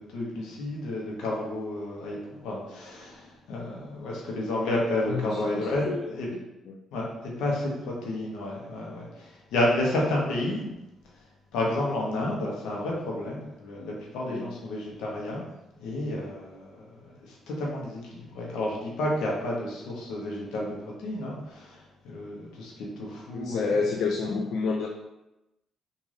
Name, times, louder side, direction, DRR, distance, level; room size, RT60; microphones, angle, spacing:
voice 1, 0.0-6.3 6.9-10.7 11.5-15.4 15.7-21.8 22.0-23.7 24.2-24.3, left 1 dB, 90° left, -3 dB, 1.0 m, -31 dB
voice 2, 5.1-6.4 6.7-6.8 14.3-14.5 23.3-24.9, left 4 dB, 75° left, 1 dB, 0.3 m, -29 dB
3.8 x 2.6 x 3.3 m, 0.95 s
cardioid pair, 90°, 0 cm